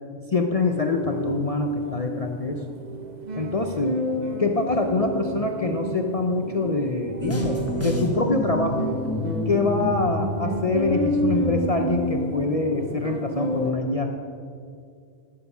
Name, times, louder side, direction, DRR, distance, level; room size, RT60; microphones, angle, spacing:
voice 1, 0.3-2.6 3.4-3.9 4.4-8.9 9.5-14.1, left 3 dB, 50° left, 4 dB, 0.4 m, -25 dB
sound 1, 0.6-13.7, right 1 dB, 40° right, 0.9 m, -30 dB
sound 2, 7.2-12.0, left 1 dB, 10° left, 1.1 m, -30 dB
14.0 x 6.7 x 5.5 m, 2.3 s
omnidirectional pair, 1.3 m